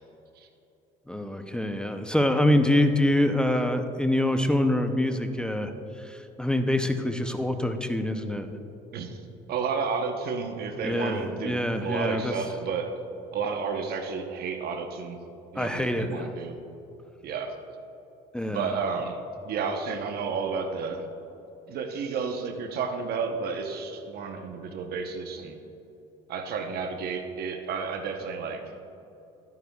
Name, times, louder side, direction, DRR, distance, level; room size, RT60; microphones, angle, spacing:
voice 1, 1.1-5.7 6.0-8.5 10.8-12.3 15.6-16.3 18.3-18.7, left 1 dB, 5° left, 6 dB, 0.6 m, -25 dB
voice 2, 9.5-12.9 13.3-15.2 15.5-16.6 17.2-17.5 18.5-21.1 21.7-25.6 26.3-28.8, right 5 dB, 60° right, 5 dB, 0.9 m, -31 dB
13.0 x 9.4 x 2.3 m, 3.0 s
supercardioid pair, 95°, 18 cm